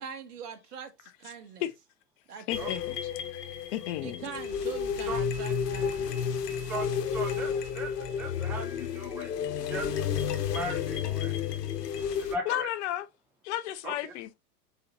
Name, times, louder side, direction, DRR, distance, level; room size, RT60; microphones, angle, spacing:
voice 1, 0.0-1.7 2.3-2.7 4.0-6.4, right 6 dB, 70° right, 1.5 m, -42 dB
Jungle relax, 2.5-12.4, left 7 dB, 75° left, 1.0 m, -31 dB
voice 2, 2.5-2.9 3.3-3.4 3.7-4.2 7.5-7.6 12.5-13.1 13.4-14.3, left 13 dB, 45° left, 0.6 m, -33 dB
voice 3, 7.1-7.9 8.2-8.6 8.9-9.3 9.7-9.9 10.5-11.3 12.2-12.7 13.8-14.1, right 1 dB, 5° right, 0.4 m, -37 dB
4.1 x 4.1 x 2.9 m
hypercardioid pair, 100°, 49 cm